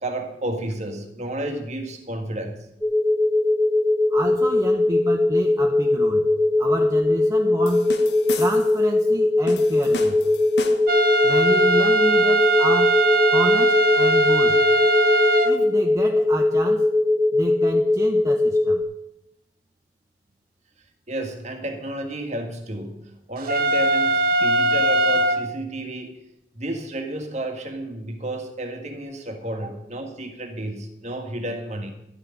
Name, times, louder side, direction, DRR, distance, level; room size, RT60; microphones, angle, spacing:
voice 1, 0.0-2.6 21.1-26.2 26.5-31.9, right 1 dB, 40° right, 5 dB, 1.9 m, -31 dB
sound 1, 2.8-18.8, left 2 dB, ahead, 1.3 m, -20 dB
voice 2, 4.1-6.3 6.6-7.9 8.4-10.2 11.2-13.0 13.3-14.6 15.4-16.9 17.3-18.8, right 1 dB, 20° right, 2 dB, 0.9 m, -29 dB
sound 2, 7.7-8.8 9.5-11.0, left 3 dB, 75° left, 1.3 m, -34 dB
sound 3, 10.9-15.5 23.5-25.4, right 2 dB, 55° right, 1.1 m, -20 dB
13.0 x 6.5 x 9.5 m, 0.86 s
head